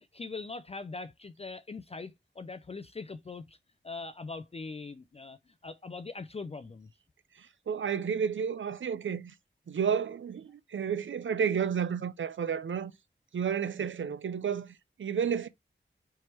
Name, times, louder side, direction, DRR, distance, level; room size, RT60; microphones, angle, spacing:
voice 1, 0.1-3.6 3.8-5.4 5.6-6.9 13.8-13.9, left 3 dB, 35° left, 0.3 m, -41 dB
voice 2, 7.4-9.3 9.7-12.9 13.3-15.5, right 7 dB, 90° right, 0.5 m, -31 dB
4.5 x 3.3 x 3.0 m
wide cardioid pair, 80°, 19 cm